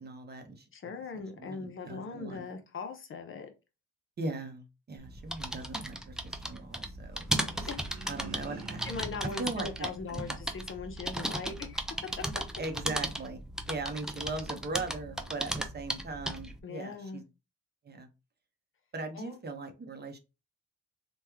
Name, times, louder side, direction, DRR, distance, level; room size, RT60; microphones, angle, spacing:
voice 1, 0.0-2.5 4.2-7.5 8.1-8.8 9.2-10.4 12.6-13.4 13.7-17.2 17.8-18.1 18.9-20.2, right 3 dB, 35° right, 0.8 m, -39 dB
voice 2, 0.7-3.5 7.6-7.9 8.8-11.8 16.6-17.2 19.1-19.4, left 4 dB, 45° left, 0.7 m, -40 dB
sound 1, 5.0-16.6, right 1 dB, ahead, 0.4 m, -36 dB
sound 2, 7.0-10.6, right 4 dB, 65° right, 1.1 m, -47 dB
3.0 x 2.3 x 3.4 m
cardioid pair, 90°, 30 cm